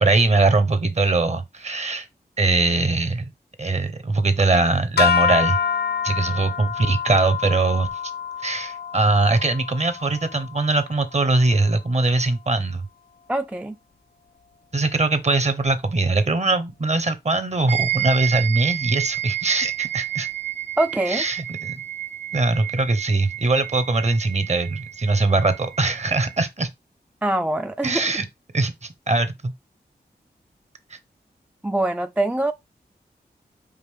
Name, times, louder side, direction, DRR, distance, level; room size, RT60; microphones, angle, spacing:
voice 1, 0.0-2.1 2.4-3.2 3.6-5.6 6.0-7.9 8.4-12.8 14.7-20.3 21.1-21.7 22.3-26.7 27.8-28.2 28.5-29.5, right 3 dB, 40° right, 0.8 m, -21 dB
sound 1, 5.0-11.3, left 7 dB, 65° left, 0.4 m, -26 dB
voice 2, 13.3-13.7 20.8-21.2 27.2-28.1 31.6-32.5, right 1 dB, 5° right, 0.3 m, -23 dB
sound 2, 17.7-26.4, right 13 dB, 75° right, 1.0 m, -30 dB
5.0 x 2.6 x 3.5 m
cardioid pair, 45°, 18 cm